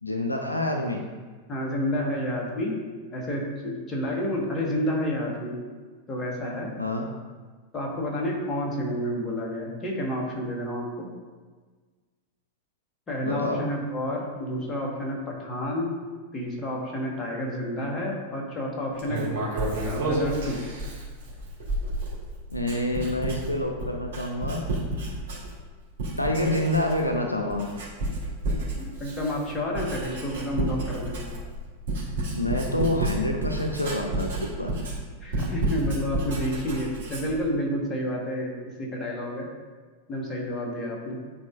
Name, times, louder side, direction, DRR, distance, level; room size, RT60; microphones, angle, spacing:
voice 1, 0.0-1.0 6.8-7.0 13.2-13.6 22.5-24.7 26.2-27.7 32.3-34.7, left 1 dB, 85° left, 2 dB, 0.5 m, -27 dB
voice 2, 1.5-2.8 3.1-5.6 6.1-6.7 7.7-11.1 13.1-16.0 16.3-19.3 19.8-20.6 28.6-31.2 35.2-38.5 38.8-39.5 40.1-41.2, equal, 20° left, -2 dB, 1.5 m, -30 dB
Writing, 19.0-25.7 26.0-27.2 27.5-37.5, right 1 dB, 60° right, 1.9 m, -31 dB
10.0 x 4.1 x 2.5 m, 1.4 s
figure-of-eight pair, 90°, 0 cm